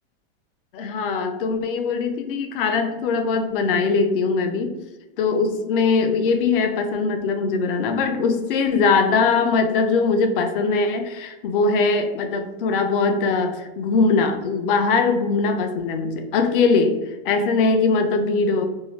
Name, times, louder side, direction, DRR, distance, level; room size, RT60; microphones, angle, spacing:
voice 1, 0.7-4.8 5.2-18.7, left 4 dB, 60° left, 6 dB, 0.5 m, -21 dB
2.6 x 2.0 x 3.0 m, 1.0 s
supercardioid pair, 165°, 31 cm